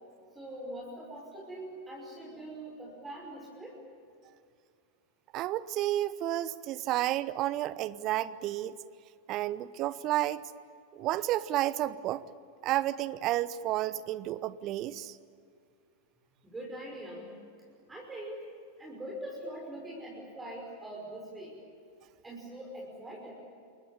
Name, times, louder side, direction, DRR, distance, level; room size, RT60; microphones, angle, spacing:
voice 1, 0.3-3.8 16.4-17.4 17.9-18.4 18.8-21.6 22.2-23.3, right 1 dB, 10° right, -2 dB, 5.8 m, -43 dB
voice 2, 5.3-8.7 9.3-10.4 10.9-12.2 12.6-15.2, right 14 dB, 35° right, 18 dB, 0.9 m, -31 dB
28.5 x 22.5 x 8.8 m, 2.3 s
figure-of-eight pair, 90°, 0 cm